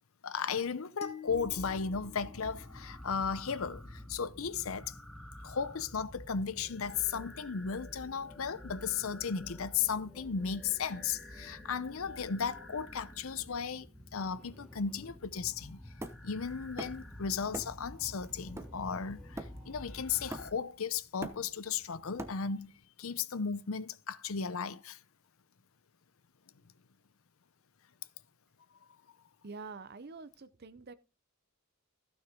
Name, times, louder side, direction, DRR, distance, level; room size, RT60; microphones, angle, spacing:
voice 1, 0.2-5.0 5.4-13.9 14.1-15.8 16.2-22.7 23.0-25.0, left 6 dB, 70° left, 0.7 m, -35 dB
sound 1, 1.0-3.4, left 6 dB, 30° left, 1.5 m, -50 dB
sound 2, 1.3-20.5, left 1 dB, 5° left, 2.1 m, -49 dB
Hammer, 16.0-17.1 17.5-17.9 18.2-19.8 20.3-20.8 21.0-22.7, right 1 dB, 10° right, 0.9 m, -43 dB
voice 2, 29.4-30.9, right 4 dB, 45° right, 0.6 m, -46 dB
15.0 x 6.4 x 3.7 m
head